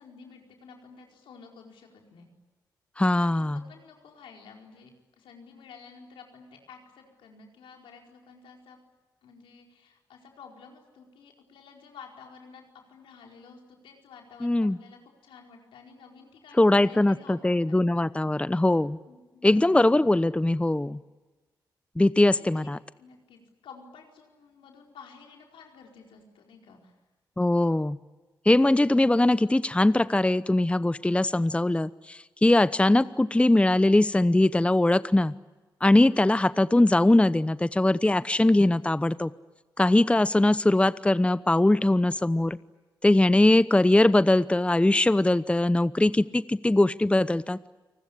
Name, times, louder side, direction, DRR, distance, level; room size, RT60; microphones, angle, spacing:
voice 1, 0.0-2.3 3.0-8.8 9.2-12.6 12.9-17.8 19.1-19.5 22.0-22.1 22.4-22.7 23.0-27.0, left 5 dB, 85° left, 1 dB, 4.7 m, -51 dB
voice 2, 3.0-3.6 14.4-14.8 16.6-19.0 19.4-21.0 22.0-22.8 27.4-28.0 28.4-35.3 35.8-39.3 39.8-42.6 43.0-47.6, left 1 dB, 15° left, 15 dB, 0.8 m, -21 dB
29.0 x 19.5 x 10.0 m, 1.2 s
supercardioid pair, 45°, 9 cm